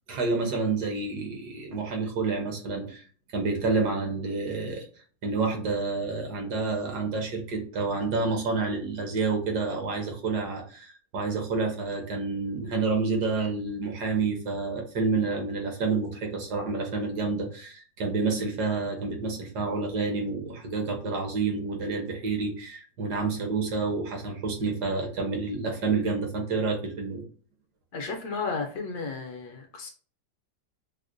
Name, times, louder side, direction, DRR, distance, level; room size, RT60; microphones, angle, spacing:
voice 1, 0.1-3.0 3.3-4.8 5.2-27.2, right 4 dB, 65° right, 2 dB, 1.4 m, -29 dB
voice 2, 27.9-29.9, left 4 dB, 70° left, 4 dB, 1.0 m, -33 dB
6.0 x 2.1 x 2.5 m, 0.41 s
omnidirectional pair, 2.0 m